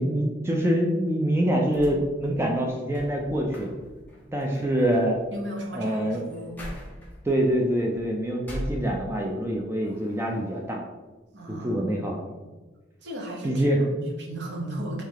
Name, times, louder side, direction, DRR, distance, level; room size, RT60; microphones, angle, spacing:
voice 1, 0.0-3.7 4.3-5.2 5.7-6.2 7.2-10.8 11.5-12.2 13.4-14.0, equal, 15° right, 0 dB, 0.3 m, -25 dB
sound 1, 1.7-9.4 9.8-10.6, equal, 10° left, 0.8 m, -42 dB
voice 2, 5.3-6.6 11.3-12.5 13.0-13.6 14.2-15.0, right 1 dB, 65° right, -1 dB, 0.9 m, -36 dB
3.2 x 3.2 x 3.6 m, 1.2 s
head